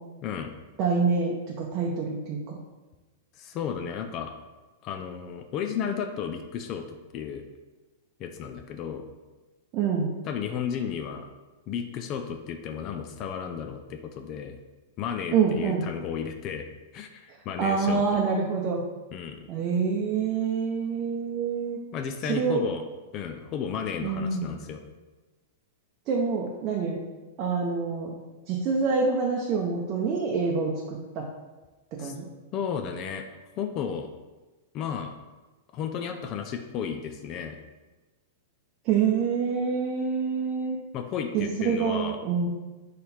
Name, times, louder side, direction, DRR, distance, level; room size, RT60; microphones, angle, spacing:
voice 1, 0.2-0.5 3.4-4.3 4.8-7.4 8.2-9.0 10.2-11.3 11.7-14.6 15.0-16.7 16.9-18.0 19.1-19.5 21.9-22.8 23.1-24.8 32.0-32.1 32.5-33.3 33.6-34.1 34.7-35.2 35.7-37.6 40.9-42.2, left 7 dB, 40° left, 6 dB, 0.4 m, -33 dB
voice 2, 0.8-2.6 9.7-10.1 15.3-15.8 17.6-18.8 19.5-21.8 22.3-22.6 24.0-24.6 26.1-27.0 27.4-28.1 28.5-31.2 32.0-32.2 38.8-40.8 41.3-42.5, right 5 dB, 40° right, -1 dB, 0.6 m, -26 dB
3.8 x 3.2 x 4.3 m, 1.2 s
hypercardioid pair, 115°, 0 cm